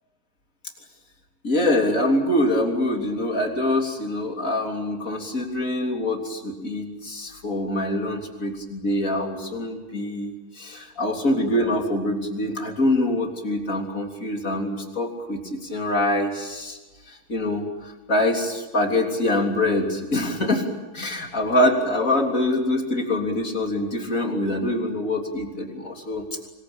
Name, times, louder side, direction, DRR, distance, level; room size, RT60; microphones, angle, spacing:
voice 1, 1.4-16.8 17.3-20.6 20.9-26.5, left 1 dB, 25° left, 2 dB, 3.3 m, -24 dB
25.0 x 22.0 x 8.8 m, 1.2 s
omnidirectional pair, 4.0 m